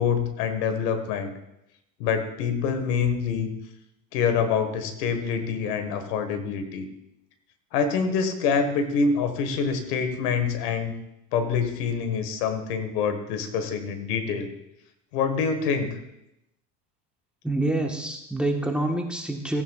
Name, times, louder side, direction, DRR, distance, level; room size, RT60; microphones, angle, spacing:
voice 1, 0.0-1.3 2.0-3.5 4.1-6.9 7.7-10.9 11.3-14.5 15.1-15.9, left 6 dB, 90° left, 8 dB, 1.6 m, -26 dB
voice 2, 17.4-19.6, right 1 dB, ahead, 2 dB, 1.3 m, -26 dB
17.0 x 9.2 x 2.4 m, 0.84 s
supercardioid pair, 120°, 45 cm